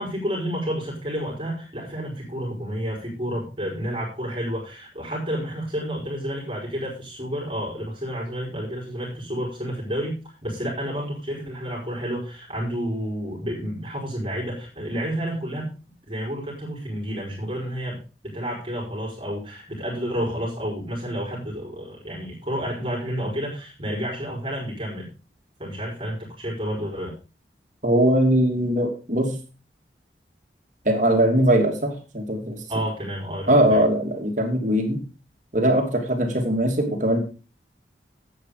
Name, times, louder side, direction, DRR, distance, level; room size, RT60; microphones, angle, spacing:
voice 1, 0.0-15.7 16.1-25.1 25.6-27.1 32.7-33.8, equal, 30° right, -4 dB, 4.9 m, -30 dB
voice 2, 27.8-29.4 30.8-32.6 33.5-35.0 35.5-37.2, right 1 dB, 45° right, 3 dB, 2.8 m, -21 dB
12.5 x 8.5 x 5.0 m, 0.33 s
head